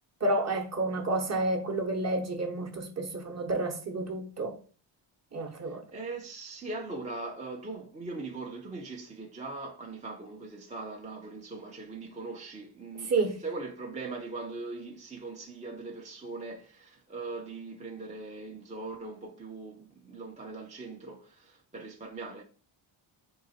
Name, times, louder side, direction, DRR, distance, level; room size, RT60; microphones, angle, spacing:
voice 1, 0.2-4.6 5.3-5.8 13.0-13.4, right 2 dB, 35° right, 0.9 m, -30 dB
voice 2, 5.6-22.4, right 3 dB, 15° right, 0.5 m, -40 dB
3.8 x 2.9 x 4.1 m
cardioid pair, 120°, 48 cm